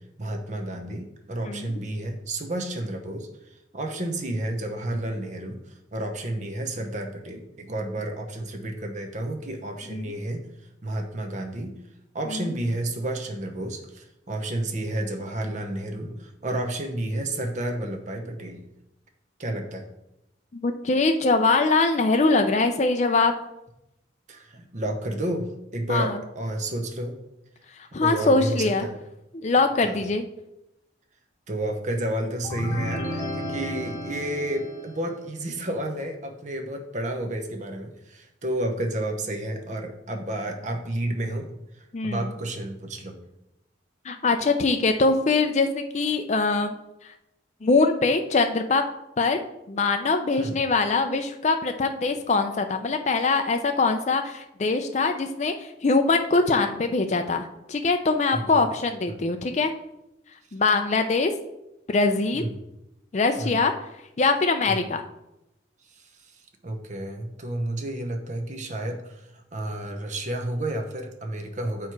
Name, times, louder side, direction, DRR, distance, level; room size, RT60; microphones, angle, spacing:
voice 1, 0.2-10.4 10.8-11.8 12.1-18.6 19.4-19.8 24.3-27.2 28.0-28.9 29.8-30.0 31.5-43.2 50.4-50.6 58.3-58.6 59.1-59.2 62.3-62.6 63.4-63.6 64.7-64.8 66.0-66.3 66.6-71.9, right 1 dB, 40° right, 4 dB, 0.8 m, -31 dB
voice 2, 20.5-23.3 25.9-26.2 27.9-28.9 29.3-30.2 41.9-42.3 44.1-46.7 47.6-48.8 49.2-49.4 49.7-59.7 60.5-61.3 61.9-62.5 63.1-63.7 64.2-65.0, left 3 dB, 40° left, 6 dB, 0.4 m, -23 dB
sound 1, 32.4-35.2, left 1 dB, 15° left, 1.2 m, -33 dB
7.4 x 4.6 x 4.6 m, 0.89 s
head